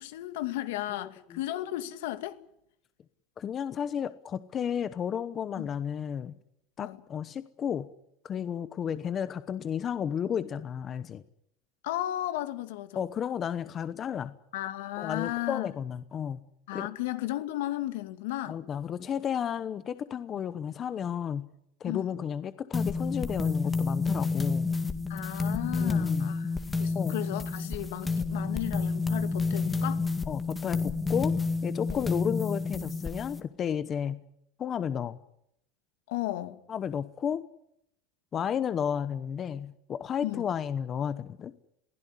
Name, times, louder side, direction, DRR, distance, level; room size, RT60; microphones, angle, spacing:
voice 1, 0.0-2.4 5.6-5.7 6.8-7.0 11.8-13.1 14.5-15.7 16.7-18.6 21.9-22.2 25.1-30.1 31.9-32.1 36.1-36.6 40.2-40.6, left 15 dB, 75° left, 2.3 m, -35 dB
voice 2, 1.0-1.4 3.4-6.3 6.8-7.9 8.2-11.2 12.9-14.4 15.0-16.4 16.7-16.9 18.5-21.5 21.8-24.7 25.8-26.3 26.9-27.2 30.3-31.4 31.6-34.2 34.6-35.2 36.7-37.5 38.3-41.5, left 8 dB, 25° left, 0.9 m, -32 dB
sound 1, 22.7-33.4, left 4 dB, 10° left, 2.0 m, -30 dB
22.5 x 16.5 x 9.9 m
supercardioid pair, 150°, 0 cm